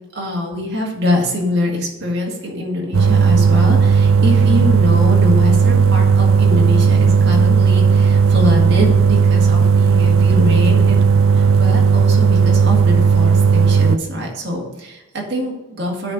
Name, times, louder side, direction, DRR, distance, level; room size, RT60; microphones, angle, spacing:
voice 1, 0.1-11.0 11.3-16.1, left 1 dB, 55° right, -1 dB, 1.9 m, -23 dB
sound 1, 2.9-14.0, right 5 dB, 80° right, 0.4 m, -13 dB
9.6 x 4.3 x 5.0 m, 1.1 s
head